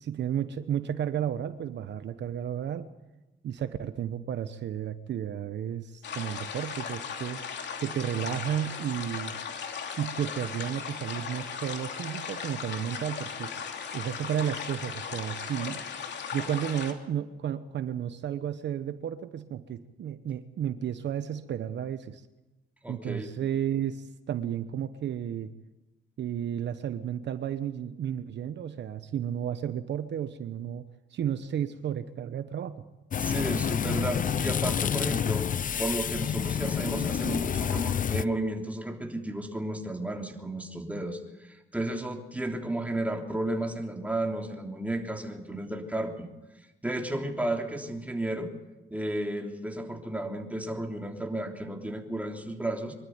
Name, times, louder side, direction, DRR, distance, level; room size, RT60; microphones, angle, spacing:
voice 1, 0.0-2.9 3.4-7.4 7.8-9.3 10.0-13.5 13.9-15.8 16.3-22.2 22.9-25.5 26.2-30.8 31.1-32.8 33.9-34.0, right 9 dB, 65° right, 11 dB, 1.0 m, -32 dB
sound 1, 6.0-16.9, left 6 dB, 65° left, 2.8 m, -37 dB
voice 2, 22.8-23.3 33.2-35.4 35.8-46.3 46.8-48.5 48.9-52.9, right 1 dB, 5° right, 2 dB, 3.3 m, -33 dB
sound 2, 33.1-38.2, left 8 dB, 45° left, 0.7 m, -28 dB
24.0 x 12.5 x 9.5 m, 1.1 s
cardioid pair, 90°, 20 cm